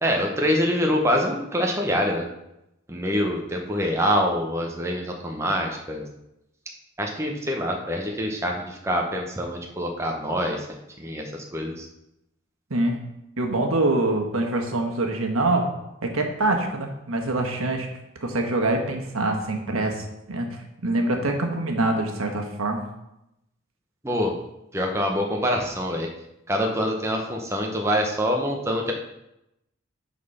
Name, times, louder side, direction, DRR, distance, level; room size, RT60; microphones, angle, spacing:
voice 1, 0.0-2.3 2.9-6.0 7.0-10.7 11.0-11.9 24.0-24.3 24.7-26.1 26.5-28.9, equal, 15° right, 1 dB, 0.9 m, -25 dB
voice 2, 13.4-15.6 16.0-17.9 18.2-22.8, right 2 dB, 85° right, 3 dB, 1.3 m, -25 dB
8.2 x 4.2 x 5.5 m, 0.86 s
head